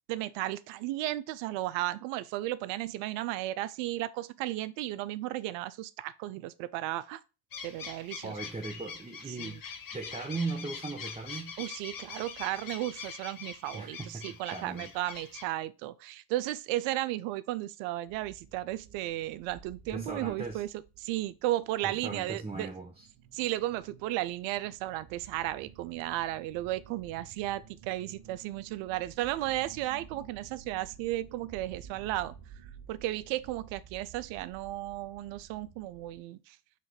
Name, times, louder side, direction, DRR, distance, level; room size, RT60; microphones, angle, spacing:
voice 1, 0.1-7.2 7.6-8.4 9.3-9.6 11.6-20.7 21.0-22.7 23.3-32.3 32.9-36.6, right 15 dB, 65° right, 0.6 m, -34 dB
sound 1, 7.5-15.5, left 6 dB, 45° left, 1.2 m, -44 dB
voice 2, 8.2-9.6 9.9-11.5 13.7-14.9 19.9-20.6 21.8-23.1, right 3 dB, 10° right, 0.7 m, -38 dB
sound 2, 18.1-36.2, right 7 dB, 40° right, 1.0 m, -53 dB
4.2 x 2.6 x 4.5 m
hypercardioid pair, 70°, 49 cm